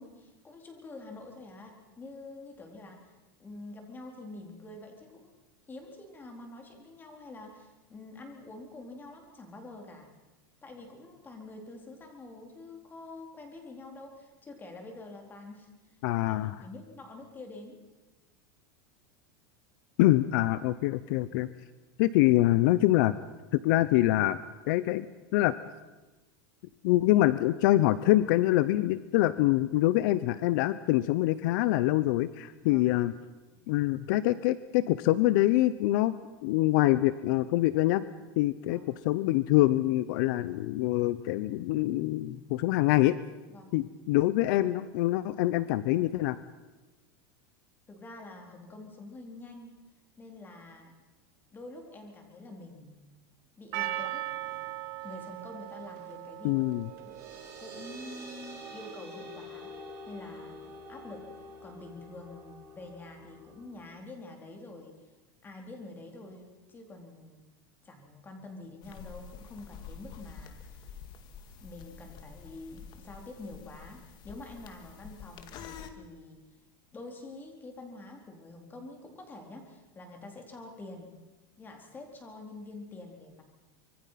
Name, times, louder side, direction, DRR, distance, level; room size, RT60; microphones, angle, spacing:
voice 1, 0.0-3.1 3.4-5.3 5.7-10.1 10.6-16.0 16.3-17.8 32.6-32.9 33.5-33.6 38.7-38.9 43.5-43.7 47.9-49.8 50.2-50.9 51.5-53.0 53.6-54.2 55.0-56.7 57.6-61.3 61.6-64.9 65.4-67.4 67.8-70.8 71.6-76.4 76.9-81.1 81.6-83.4, left 2 dB, 15° left, 3 dB, 4.2 m, -47 dB
voice 2, 16.0-16.6 20.0-21.5 22.0-23.2 23.5-24.4 24.7-25.1 25.3-25.5 26.8-33.1 33.7-36.1 36.4-38.0 38.4-43.2 43.7-46.4 56.4-56.9, left 16 dB, 60° left, 15 dB, 0.8 m, -25 dB
Percussion, 53.7-58.7, right 15 dB, 60° right, 2.2 m, -39 dB
sound 1, 56.6-63.8, equal, 25° right, 7.0 m, -47 dB
sound 2, 68.8-75.9, left 7 dB, 40° left, 2.0 m, -48 dB
25.5 x 23.5 x 5.9 m, 1.2 s
supercardioid pair, 150°, 11 cm